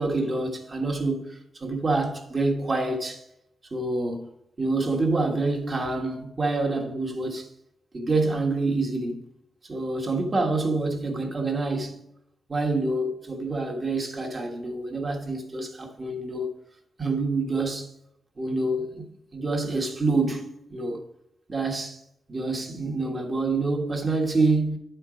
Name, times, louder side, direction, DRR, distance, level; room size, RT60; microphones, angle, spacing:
voice 1, 0.0-3.2 3.7-4.3 4.6-7.5 7.9-9.2 9.7-12.0 12.5-16.5 17.0-17.9 18.4-19.0 19.3-21.0 21.5-22.0 22.3-24.8, right 3 dB, 30° right, 1.5 m, -27 dB
10.0 x 4.5 x 5.0 m
wide cardioid pair, 140°, 0 cm